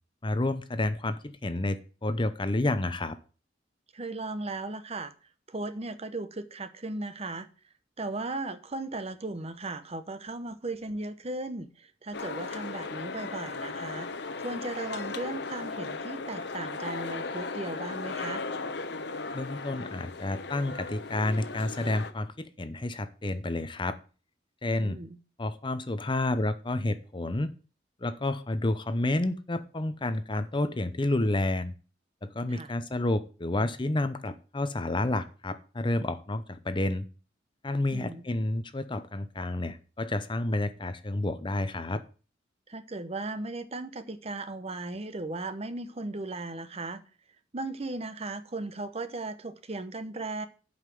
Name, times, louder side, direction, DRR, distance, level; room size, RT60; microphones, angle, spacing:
voice 1, 0.2-3.2 19.3-24.0 24.6-25.0 25.4-27.5 28.0-31.7 32.2-37.1 37.6-42.0, left 2 dB, 25° left, 0.7 m, -30 dB
voice 2, 3.9-5.1 5.5-7.5 8.0-18.4 24.8-25.2 32.5-32.7 37.9-38.2 42.7-47.0 47.5-50.5, right 2 dB, 35° right, 0.8 m, -37 dB
sound 1, 12.1-22.1, left 3 dB, 65° left, 1.0 m, -37 dB
7.9 x 5.6 x 7.7 m
head